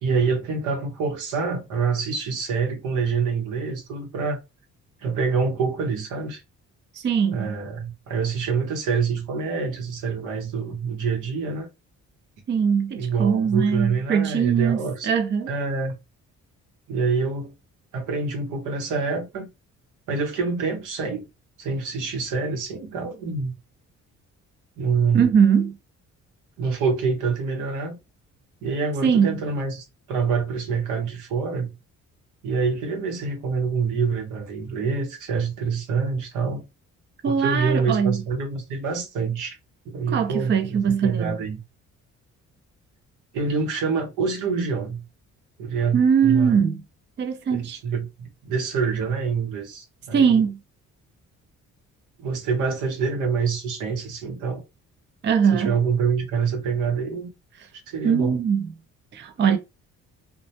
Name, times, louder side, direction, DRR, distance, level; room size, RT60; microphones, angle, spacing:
voice 1, 0.0-4.4 5.0-6.4 7.3-11.7 13.0-15.1 15.5-15.9 16.9-17.5 17.9-19.5 20.1-21.3 21.6-23.5 24.8-25.3 26.6-28.0 28.6-31.7 32.4-36.6 37.2-39.6 39.9-41.6 43.3-45.0 45.6-46.6 47.5-50.4 52.2-54.6 55.5-57.3 57.9-58.4, right 5 dB, 85° right, 0.8 m, -26 dB
voice 2, 7.0-7.5 12.5-14.8 15.0-15.5 25.1-25.7 29.0-29.4 37.2-38.2 40.1-41.4 45.9-46.8 47.2-47.8 50.1-50.6 55.2-55.7 58.0-58.7 59.1-59.6, right 7 dB, 35° right, 0.5 m, -21 dB
2.1 x 2.0 x 2.8 m
cardioid pair, 90°, 30 cm